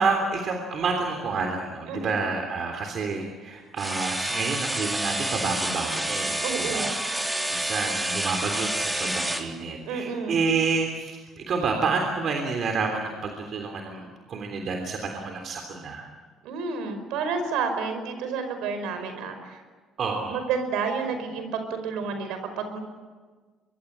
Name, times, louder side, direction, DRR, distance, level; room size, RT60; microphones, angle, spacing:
voice 1, 0.0-16.1 20.0-20.5, right 4 dB, 55° right, 3 dB, 3.4 m, -29 dB
sound 1, 3.8-9.5, right 1 dB, 10° right, 3.3 m, -29 dB
voice 2, 6.4-7.0 9.9-10.4 16.4-19.6 20.3-22.8, right 5 dB, 80° right, 8 dB, 5.2 m, -30 dB
24.0 x 23.5 x 8.8 m, 1.4 s
supercardioid pair, 80°, 0 cm